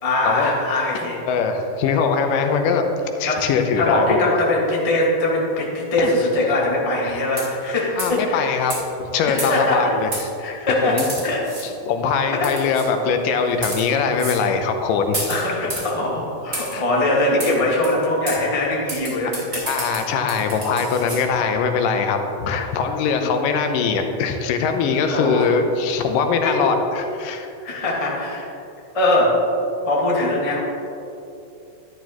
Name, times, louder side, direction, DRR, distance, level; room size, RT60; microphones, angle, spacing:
voice 1, 0.0-1.2 3.3-3.5 3.8-8.4 9.3-9.9 10.4-11.5 12.3-12.5 14.3-14.4 15.3-19.6 23.1-23.3 25.1-25.5 26.4-26.6 27.4-28.5 28.9-29.4 29.8-30.6, left 2 dB, 20° left, -4 dB, 0.8 m, -22 dB
voice 2, 1.3-2.8 3.1-4.4 6.0-6.1 7.0-7.2 8.0-8.7 9.0-10.1 10.4-10.6 10.8-11.1 11.9-15.7 16.7-16.8 19.7-27.5, left 5 dB, 85° left, 5 dB, 2.4 m, -22 dB
sound 1, 7.4-7.7 8.0-8.2 8.7-8.8 9.4-9.7 10.1-10.2 11.0-11.7 12.4-12.9 13.5-13.8 14.2-14.4 15.1-15.9 16.5-16.8 17.4-17.5 17.8-17.9 18.3-18.4 18.9-21.2, right 2 dB, 25° right, 2.6 m, -30 dB
11.5 x 11.0 x 3.0 m, 2.7 s
omnidirectional pair, 3.8 m